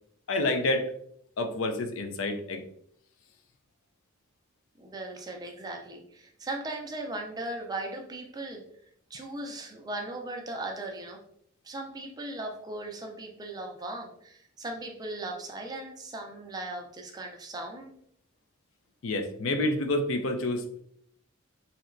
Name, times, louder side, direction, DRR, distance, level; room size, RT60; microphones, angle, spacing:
voice 1, 0.3-0.9 1.4-2.6 19.0-20.8, left 2 dB, 70° left, 6 dB, 0.4 m, -28 dB
voice 2, 4.8-8.6 9.1-11.2 11.6-17.9, right 2 dB, 20° right, 2 dB, 0.4 m, -38 dB
3.2 x 2.8 x 2.5 m, 0.67 s
head